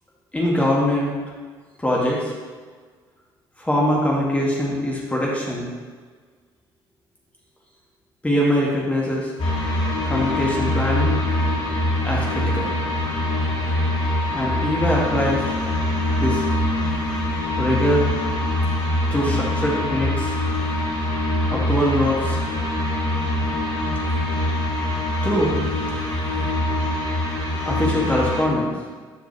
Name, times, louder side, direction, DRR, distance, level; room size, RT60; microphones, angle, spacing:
voice 1, 0.3-1.1 1.8-2.3 3.6-5.7 8.2-9.3 10.0-11.1 12.0-12.8 14.3-15.4 16.2-16.5 17.6-18.1 19.1-20.4 21.5-22.4 25.2-25.6 27.6-28.7, equal, 10° left, -4 dB, 2.0 m, -22 dB
sound 1, 9.4-28.4, left 1 dB, 50° left, 1.7 m, -23 dB
11.5 x 5.1 x 3.2 m, 1.5 s
figure-of-eight pair, 50°, 12 cm